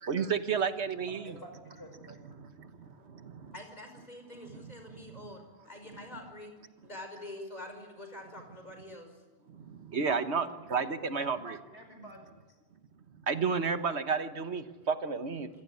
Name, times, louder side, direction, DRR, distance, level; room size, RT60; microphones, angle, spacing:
voice 1, 0.0-1.4 2.4-3.5 4.6-5.2 9.5-11.6 13.3-15.5, right 5 dB, 80° right, 9 dB, 1.6 m, -32 dB
voice 2, 1.1-2.2 10.1-10.7 11.2-12.5, equal, 70° left, 5 dB, 5.7 m, -50 dB
voice 3, 3.5-6.5 6.8-9.1, left 1 dB, 40° left, 4 dB, 5.4 m, -46 dB
27.0 x 16.0 x 9.6 m, 1.2 s
omnidirectional pair, 1.1 m